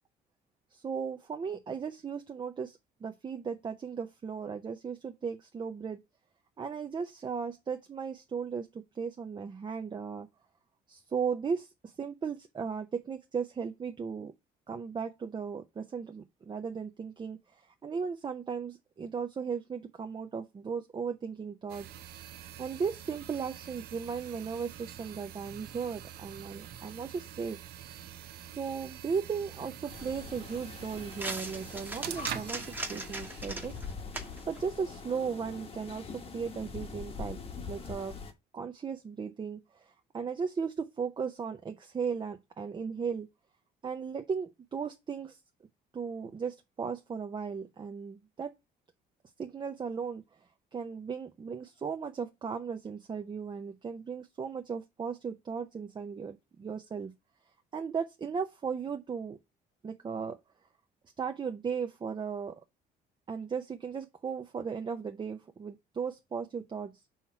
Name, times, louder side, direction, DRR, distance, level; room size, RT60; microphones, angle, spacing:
voice 1, 0.7-6.0 6.6-10.3 10.9-14.3 14.7-21.9 22.6-27.6 28.4-33.8 34.5-37.4 37.7-38.2 38.5-43.3 43.8-45.4 45.9-48.5 49.4-50.2 50.7-57.1 57.7-59.4 59.8-60.4 61.2-62.6 63.3-67.0, right 6 dB, 25° right, 0.6 m, -36 dB
sound 1, 21.7-33.7, right 10 dB, 70° right, 0.8 m, -45 dB
sound 2, 29.1-35.9, right 2 dB, 10° right, 1.1 m, -43 dB
sound 3, 29.9-38.3, left 4 dB, 35° left, 1.1 m, -44 dB
5.6 x 3.0 x 5.6 m
cardioid pair, 110°, 17 cm